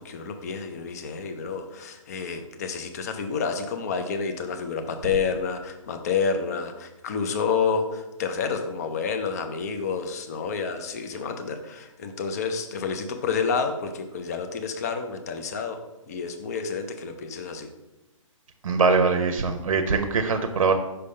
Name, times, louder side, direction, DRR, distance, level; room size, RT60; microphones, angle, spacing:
voice 1, 0.0-15.8 16.1-17.7, left 5 dB, 30° left, 7 dB, 0.5 m, -29 dB
voice 2, 18.6-20.7, right 4 dB, 75° right, 6 dB, 0.7 m, -22 dB
5.6 x 3.4 x 5.2 m, 1.0 s
hypercardioid pair, 160°, 17 cm